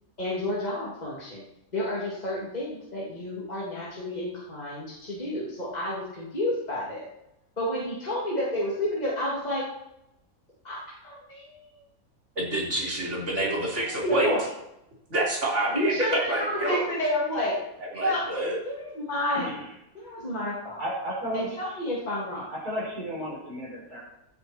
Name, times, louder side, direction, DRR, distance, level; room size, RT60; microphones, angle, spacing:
voice 1, 0.2-1.4 1.7-7.1 7.6-9.7 10.6-11.7 14.0-14.4 15.7-17.6 18.0-18.3 18.6-19.5 19.9-20.8 21.3-22.5, left 1 dB, 25° left, -6 dB, 3.1 m, -30 dB
voice 2, 12.4-14.3 15.1-16.9 17.9-18.6, right 1 dB, 50° right, -4 dB, 4.1 m, -27 dB
voice 3, 20.8-21.5 22.5-24.0, equal, 90° right, -4 dB, 6.1 m, -33 dB
17.0 x 9.7 x 4.5 m, 0.86 s
omnidirectional pair, 1.6 m